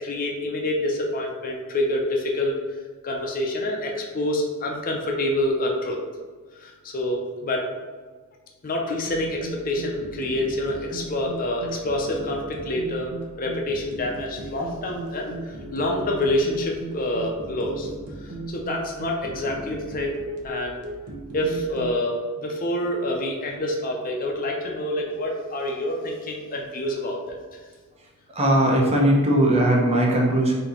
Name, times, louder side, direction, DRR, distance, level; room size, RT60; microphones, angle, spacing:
voice 1, 0.0-2.6 3.0-6.0 6.6-7.6 8.6-17.9 18.2-20.8 21.3-27.4, left 1 dB, 40° left, 0 dB, 0.6 m, -27 dB
sound 1, 9.1-22.0, right 2 dB, 85° right, 0.8 m, -36 dB
voice 2, 28.3-30.5, right 1 dB, 30° right, -1 dB, 0.8 m, -19 dB
4.2 x 2.8 x 4.3 m, 1.5 s
head